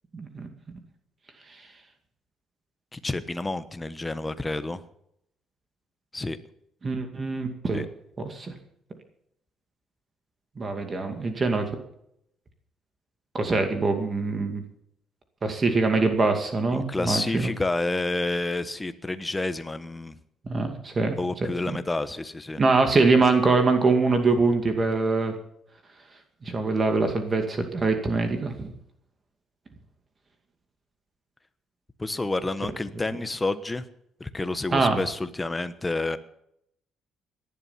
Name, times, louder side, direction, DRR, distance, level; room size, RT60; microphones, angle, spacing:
voice 1, 0.1-0.5 6.8-7.8 8.2-8.5 10.6-11.7 13.3-14.6 15.4-17.5 20.5-21.2 21.7-21.8 22.6-25.3 26.4-28.7 34.7-35.0, right 3 dB, 25° right, 5 dB, 2.3 m, -23 dB
voice 2, 2.9-4.8 6.1-6.4 7.7-7.9 16.7-20.1 21.2-22.6 32.0-33.8 34.2-36.2, left 2 dB, 15° left, 11 dB, 1.1 m, -29 dB
18.5 x 11.5 x 5.8 m, 0.74 s
cardioid pair, 140°, 0 cm